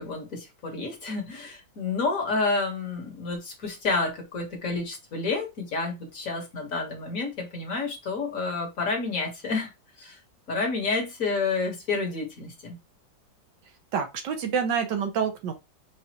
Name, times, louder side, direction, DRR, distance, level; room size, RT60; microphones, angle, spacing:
voice 1, 0.0-9.7 10.0-10.2 10.5-12.8, left 3 dB, 45° left, 1.5 m, -29 dB
voice 2, 13.9-15.5, right 7 dB, 70° right, 1.4 m, -27 dB
5.1 x 2.6 x 2.8 m
omnidirectional pair, 2.1 m